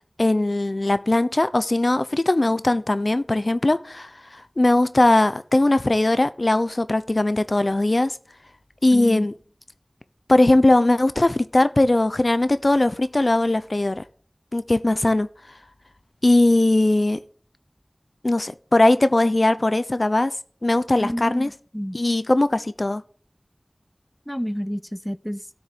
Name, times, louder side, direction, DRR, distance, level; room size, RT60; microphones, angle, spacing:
voice 1, 0.2-4.1 4.6-8.1 8.8-9.3 10.3-14.0 14.5-15.3 16.2-17.2 18.2-20.3 20.6-21.5 21.9-23.0, left 2 dB, 55° left, 0.9 m, -19 dB
voice 2, 8.9-9.3 21.0-22.0 24.3-25.4, equal, 5° left, 0.9 m, -29 dB
13.0 x 6.8 x 9.5 m
wide cardioid pair, 45°, 0 cm